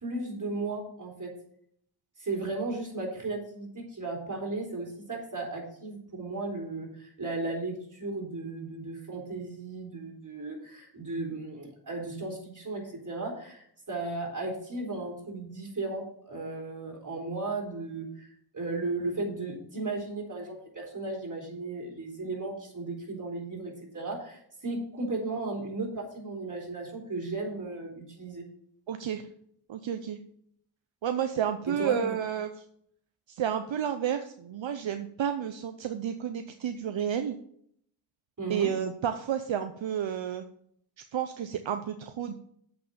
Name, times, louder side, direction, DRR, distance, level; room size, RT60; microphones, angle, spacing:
voice 1, 0.0-1.3 2.2-18.3 18.5-28.5 31.7-32.2 38.4-38.7, right 3 dB, 40° right, -1 dB, 3.8 m, -35 dB
voice 2, 28.9-29.3 29.7-30.2 31.0-32.6 33.3-37.4 38.5-40.5 41.1-42.3, right 9 dB, 75° right, 8 dB, 0.7 m, -31 dB
7.7 x 5.8 x 6.8 m, 0.67 s
cardioid pair, 55°, 46 cm